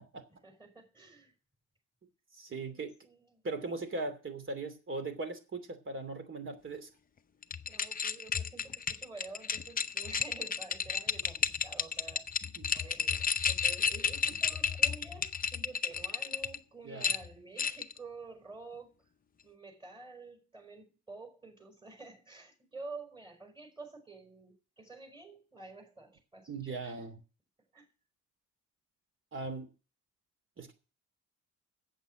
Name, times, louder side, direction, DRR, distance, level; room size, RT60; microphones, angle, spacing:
voice 1, 0.3-1.3 2.7-3.4 7.7-19.1 19.4-27.0 27.7-27.9, right 3 dB, 15° right, 4.9 m, -50 dB
voice 2, 2.3-2.9 3.4-6.9 12.4-12.7 16.8-17.1 26.5-27.2 29.3-29.7 30.6-30.7, right 3 dB, 40° right, 2.8 m, -39 dB
sound 1, 7.4-16.6 17.0-18.0, left 6 dB, 30° left, 0.7 m, -32 dB
8.2 x 7.9 x 8.9 m
cardioid pair, 90°, 30 cm